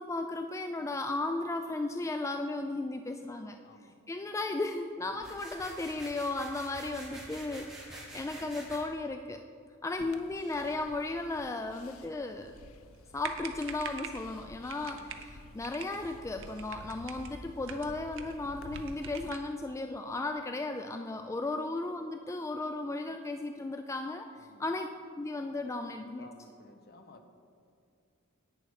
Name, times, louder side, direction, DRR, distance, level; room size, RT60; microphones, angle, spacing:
voice 1, 0.0-3.6 4.1-9.4 9.8-12.5 13.1-24.9 25.2-26.3, left 2 dB, 15° left, 6 dB, 0.3 m, -35 dB
voice 2, 3.6-4.0 5.0-5.4 7.9-8.7 14.8-15.2 20.3-20.6 21.1-21.4 24.3-24.7 26.2-27.3, left 2 dB, 50° left, 6 dB, 1.0 m, -56 dB
sound 1, 5.2-8.8, right 1 dB, 5° right, 2.0 m, -47 dB
sound 2, 9.9-19.3, left 2 dB, 75° left, 0.6 m, -51 dB
sound 3, 12.9-13.0 13.2-14.3 14.7-15.3 15.6-16.0 16.4-17.3 17.6-18.4 18.7-19.5, right 7 dB, 65° right, 0.8 m, -44 dB
10.5 x 9.2 x 4.7 m, 2.4 s
head